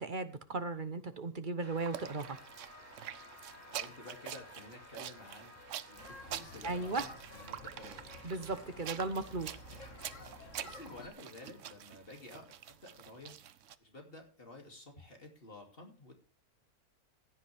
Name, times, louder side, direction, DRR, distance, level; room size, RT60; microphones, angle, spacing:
voice 1, 0.0-2.4 6.6-7.0 8.2-9.5, right 3 dB, 40° right, 11 dB, 1.0 m, -36 dB
sound 1, 1.6-13.0, left 1 dB, 10° right, 6.2 m, -57 dB
sound 2, 1.8-13.8, right 10 dB, 60° right, 0.9 m, -46 dB
voice 2, 3.5-8.1 10.6-13.4 13.8-16.1, left 2 dB, 35° left, 2 dB, 2.8 m, -52 dB
sound 3, 6.0-11.1, left 2 dB, 55° left, 2.3 m, -52 dB
15.5 x 10.0 x 3.5 m, 0.36 s
omnidirectional pair, 1.6 m